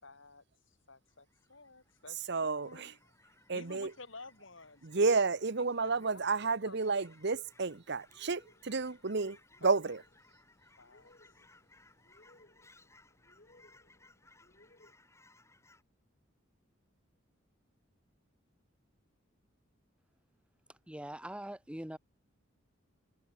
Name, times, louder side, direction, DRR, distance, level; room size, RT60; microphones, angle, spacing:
voice 1, 0.0-2.3 2.6-3.0 3.5-5.1 5.6-6.8 10.8-11.1, left 3 dB, 65° left, 5.5 m, -53 dB
Fowl / Chirp tweet, 1.1-15.8, left 2 dB, 15° left, 3.8 m, -64 dB
voice 2, 2.3-2.9 3.5-3.9 4.8-10.0, right 4 dB, 55° right, 1.0 m, -31 dB
sound 1, 8.0-14.9, left 1 dB, 45° left, 4.4 m, -66 dB
voice 3, 20.7-22.0, right 1 dB, 5° right, 0.8 m, -43 dB
head